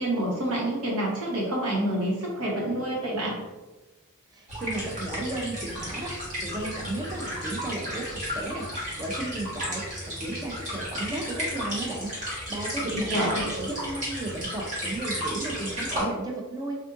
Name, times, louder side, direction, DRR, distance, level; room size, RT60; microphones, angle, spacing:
voice 1, 0.0-3.4 12.9-13.5, right 1 dB, 80° right, -4 dB, 1.0 m, -28 dB
voice 2, 4.3-13.3 13.6-16.8, right 2 dB, 20° right, 0 dB, 0.5 m, -34 dB
sound 1, 4.5-16.0, equal, 35° right, 1.2 m, -33 dB
3.4 x 2.5 x 2.5 m, 1.1 s
head